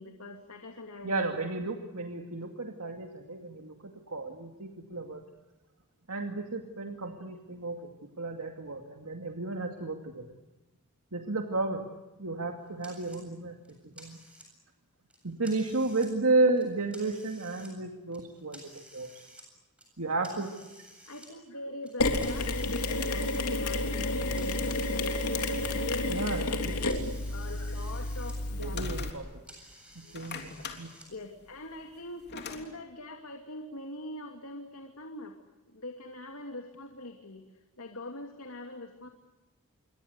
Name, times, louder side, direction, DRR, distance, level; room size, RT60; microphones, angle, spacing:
voice 1, 0.0-1.4 20.3-20.4 21.1-26.6 27.3-28.8 30.0-30.5 31.1-35.4 35.7-39.1, left 2 dB, 70° left, 4 dB, 2.7 m, -43 dB
voice 2, 1.0-5.2 6.1-7.9 8.2-10.3 11.1-11.9 12.2-13.6 13.8-14.2 15.2-19.1 20.0-20.5 26.1-26.7 28.6-29.3 30.1-30.5 30.8-30.9, right 3 dB, 75° right, 3 dB, 2.4 m, -32 dB
sound 1, 12.8-13.2 13.6-14.7 15.1-16.1 16.5-17.7 18.1-19.5 19.8-21.3 21.8-25.7 26.0-28.4 28.7-31.1, right 1 dB, 5° right, 8.0 m, -53 dB
Mechanisms, 22.0-29.1, left 2 dB, 90° left, 3.3 m, -31 dB
sound 2, 28.6-29.6 30.0-32.6, left 4 dB, 50° left, 3.4 m, -42 dB
28.5 x 23.5 x 8.2 m, 1.1 s
head